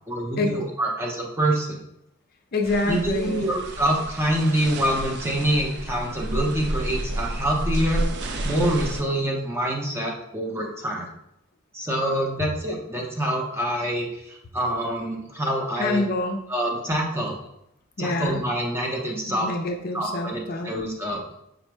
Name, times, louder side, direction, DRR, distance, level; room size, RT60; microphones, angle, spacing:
voice 1, 0.1-1.8 2.9-8.1 8.4-11.1 11.7-16.0 16.5-17.4 18.0-19.5 19.9-21.2, right 1 dB, 10° right, -1 dB, 0.7 m, -26 dB
voice 2, 2.5-3.5 15.8-16.4 18.0-18.4 19.2-20.7, left 2 dB, 45° left, 4 dB, 0.5 m, -26 dB
sound 1, 2.6-9.0, right 1 dB, 55° right, 0.5 m, -31 dB
5.0 x 2.1 x 4.6 m, 0.80 s
head